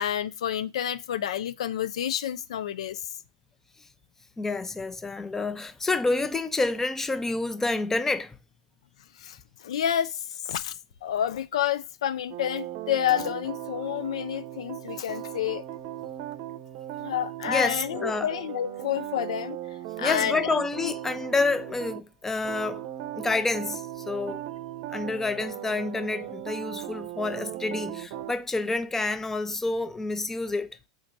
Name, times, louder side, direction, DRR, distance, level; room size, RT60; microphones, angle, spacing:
voice 1, 0.0-3.0 9.2-10.2 10.5-10.7 11.0-15.6 17.0-19.6 20.0-20.9, left 10 dB, 80° left, 0.4 m, -29 dB
voice 2, 4.4-8.4 17.5-18.3 20.0-22.8 23.1-24.4 24.9-30.8, left 3 dB, 10° left, 0.5 m, -28 dB
sound 1, 12.3-22.0 22.4-28.3, right 13 dB, 60° right, 0.7 m, -38 dB
3.8 x 2.5 x 4.6 m
hypercardioid pair, 105°, 3 cm